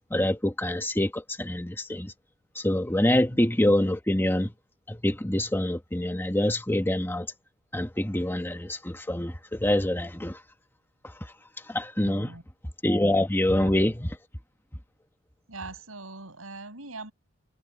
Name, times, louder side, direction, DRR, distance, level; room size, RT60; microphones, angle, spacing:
voice 1, 0.1-2.1 2.5-4.5 4.9-7.3 7.7-10.4 11.7-12.3 12.8-14.1, left 1 dB, 10° left, 1.4 m, -25 dB
voice 2, 12.0-12.4 13.5-13.9 15.5-17.1, right 3 dB, 85° right, 6.9 m, -42 dB
head